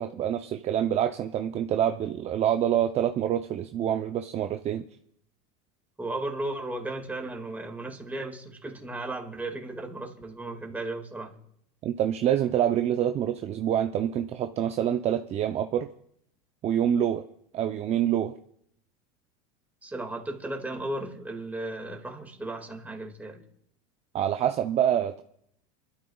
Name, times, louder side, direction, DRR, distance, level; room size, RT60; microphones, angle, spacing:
voice 1, 0.0-4.8 11.8-15.9 16.6-17.2 17.5-18.4 24.1-25.2, right 10 dB, 35° right, 0.6 m, -26 dB
voice 2, 6.0-11.3 19.8-23.4, right 2 dB, 10° right, 2.1 m, -35 dB
26.5 x 12.5 x 2.4 m
supercardioid pair, 115°, 18 cm